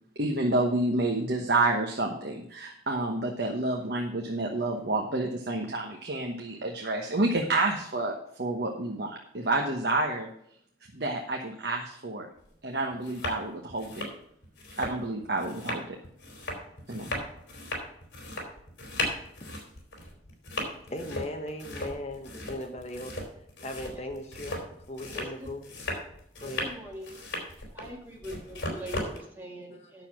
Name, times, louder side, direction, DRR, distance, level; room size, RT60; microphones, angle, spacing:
voice 1, 0.2-10.3 10.9-12.3 12.6-14.1 14.8-15.8 16.9-17.2, right 2 dB, 60° right, 1 dB, 1.2 m, -29 dB
sound 1, 12.4-12.5 12.9-13.4 13.7-29.2, left 1 dB, 80° left, 3.3 m, -37 dB
voice 2, 20.9-23.2 23.6-24.6 24.9-25.7 26.4-26.7, left 1 dB, 35° left, 4 dB, 1.2 m, -38 dB
voice 3, 25.1-25.5 26.4-27.2 27.7-30.1, equal, 10° right, -3 dB, 2.1 m, -43 dB
9.8 x 6.8 x 5.9 m, 0.71 s
head